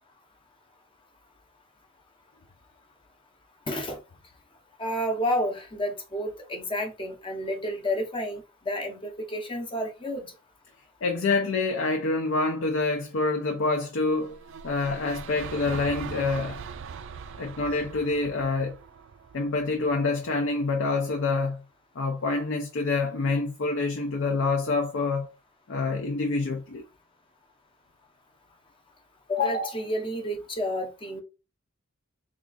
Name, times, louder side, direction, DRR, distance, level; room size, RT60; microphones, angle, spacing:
voice 1, 3.7-4.0 4.8-10.3 29.3-31.2, left 1 dB, 25° left, 0.7 m, -30 dB
voice 2, 11.0-14.4 14.6-16.6 17.4-18.8 19.3-21.6 22.0-25.3 25.7-26.8, left 3 dB, 65° left, 0.6 m, -27 dB
sound 1, 14.1-20.3, right 6 dB, 65° right, 0.4 m, -41 dB
3.6 x 2.4 x 3.8 m
head